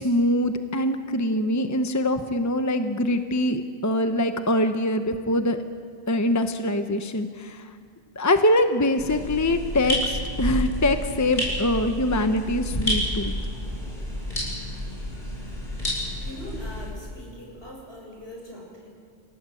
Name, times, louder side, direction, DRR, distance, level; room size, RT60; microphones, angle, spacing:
voice 1, 0.0-5.6 6.1-7.6 8.2-13.3, left 1 dB, 15° left, 7 dB, 0.9 m, -23 dB
sound 1, 9.0-16.9, equal, 50° left, 8.0 m, -30 dB
voice 2, 16.2-18.9, left 1 dB, 70° left, -1 dB, 7.3 m, -41 dB
29.0 x 17.5 x 7.8 m, 2.2 s
omnidirectional pair, 1.1 m